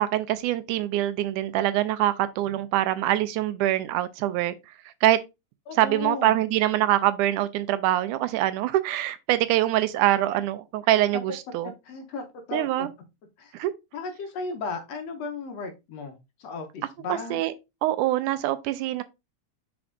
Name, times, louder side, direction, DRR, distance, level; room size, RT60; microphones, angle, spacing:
voice 1, 0.0-4.5 5.0-5.2 5.8-11.7 12.5-12.9 13.5-13.7 17.1-17.5 17.8-19.0, right 14 dB, 80° right, 2.0 m, -24 dB
voice 2, 5.7-6.4 11.1-11.2 11.6-12.9 13.4-13.5 13.9-17.4, left 4 dB, 65° left, 1.9 m, -35 dB
6.0 x 4.4 x 3.7 m
omnidirectional pair, 3.6 m